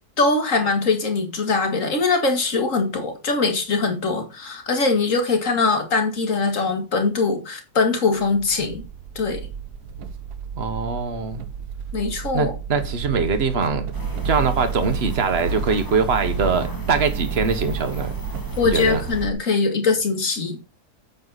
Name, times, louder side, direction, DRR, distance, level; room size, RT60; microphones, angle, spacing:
voice 1, 0.2-8.9 9.2-9.5 11.9-12.5 18.6-20.6, left 4 dB, 55° left, 2.5 m, -22 dB
sound 1, 8.2-19.3, right 6 dB, 75° right, 1.5 m, -31 dB
voice 2, 10.5-11.4 12.3-13.9 14.2-18.1 18.6-19.0, right 5 dB, 40° right, 1.6 m, -22 dB
sound 2, 13.9-19.3, equal, 15° left, 2.1 m, -36 dB
9.5 x 8.5 x 4.2 m
omnidirectional pair, 1.6 m